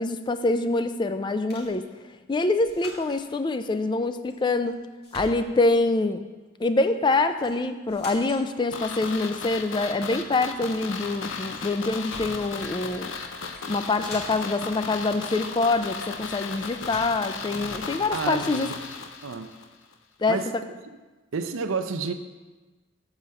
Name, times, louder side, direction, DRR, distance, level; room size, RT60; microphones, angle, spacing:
voice 1, 0.0-1.8 2.3-4.8 5.1-6.2 6.6-13.1 13.7-18.7 20.2-20.6, left 3 dB, 25° left, 9 dB, 0.3 m, -25 dB
sound 1, 1.5-1.8 2.6-3.3 4.3-4.8 5.0-5.7 7.4-7.6 7.9-8.5 11.5-11.6 11.9-12.5 13.4-13.7 14.0-14.6 16.3-16.5 16.8-17.3, left 1 dB, 55° left, 1.8 m, -44 dB
sound 2, 8.7-19.7 19.9-20.0, left 5 dB, 75° left, 0.6 m, -36 dB
voice 2, 18.1-18.8 19.2-19.5 20.3-20.8 21.3-22.1, right 5 dB, 85° right, 8 dB, 0.6 m, -30 dB
6.9 x 5.0 x 6.4 m, 1.2 s
head